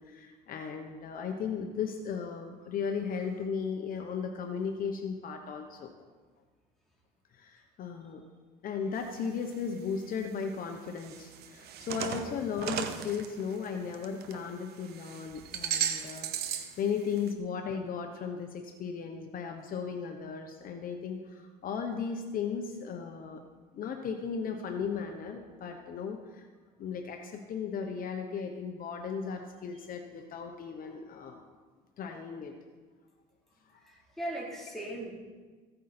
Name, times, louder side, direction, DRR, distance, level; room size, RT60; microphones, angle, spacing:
voice 1, 0.0-5.9 7.3-8.2 8.6-23.4 23.7-26.5 26.8-31.4 32.0-32.5 33.7-33.9, left 6 dB, 55° left, 4 dB, 1.1 m, -36 dB
sound 1, 9.0-9.5 10.0-10.1 10.9-14.4 14.7-16.8 17.1-17.3, right 9 dB, 75° right, 1.0 m, -36 dB
voice 2, 33.8-35.1, right 1 dB, ahead, -5 dB, 3.8 m, -38 dB
15.5 x 9.2 x 4.4 m, 1.4 s
cardioid pair, 110°, 17 cm